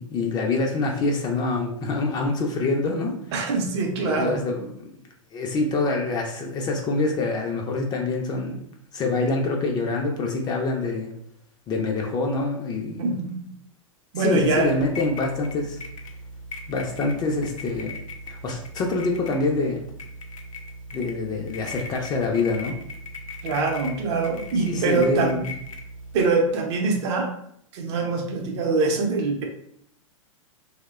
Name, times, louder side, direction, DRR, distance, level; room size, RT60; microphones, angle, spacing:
voice 1, 0.0-3.1 4.1-4.9 5.3-8.6 8.9-11.1 11.7-13.0 14.2-15.8 16.7-18.0 18.3-19.8 20.9-22.7 24.7-25.5, left 3 dB, 25° left, 1 dB, 0.4 m, -25 dB
voice 2, 3.3-4.4 13.0-13.5 14.1-14.7 23.4-25.4 26.1-27.3 27.7-29.4, right 4 dB, 55° right, 2 dB, 0.6 m, -24 dB
sound 1, 14.4-26.3, left 1 dB, 75° left, 0.5 m, -39 dB
2.6 x 2.1 x 2.3 m, 0.70 s
hypercardioid pair, 110°, 17 cm